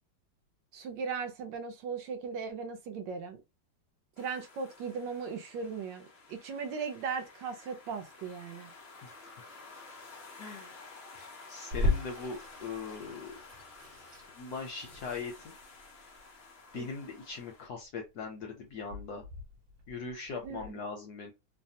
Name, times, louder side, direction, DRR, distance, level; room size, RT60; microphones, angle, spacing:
voice 1, 0.7-3.4 4.2-8.7 16.7-16.9 20.4-20.8, right 5 dB, 75° right, 1.2 m, -38 dB
sound 1, 4.2-17.7, left 3 dB, 90° left, 0.5 m, -52 dB
voice 2, 9.0-9.5 10.4-10.7 11.1-13.3 14.4-15.5 16.7-19.2 19.9-21.3, left 4 dB, 70° left, 0.9 m, -40 dB
Water tap faucet / Sink (filling or washing), 11.7-20.7, left 2 dB, 50° right, 1.5 m, -38 dB
3.3 x 2.1 x 2.7 m
omnidirectional pair, 2.2 m